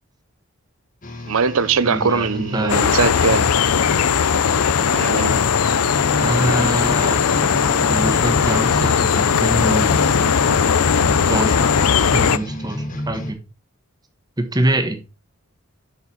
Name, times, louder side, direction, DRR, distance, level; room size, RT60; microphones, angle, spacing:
sound 1, 1.0-13.3, equal, 35° left, 1.4 m, -31 dB
voice 1, 1.3-3.5 4.9-5.3, right 5 dB, 70° right, 0.6 m, -21 dB
voice 2, 1.8-3.0 6.2-10.2 10.9-13.4 14.4-15.0, right 1 dB, 20° right, 1.2 m, -25 dB
sound 2, 2.7-12.4, left 7 dB, 85° left, 0.5 m, -18 dB
7.0 x 6.5 x 4.3 m
head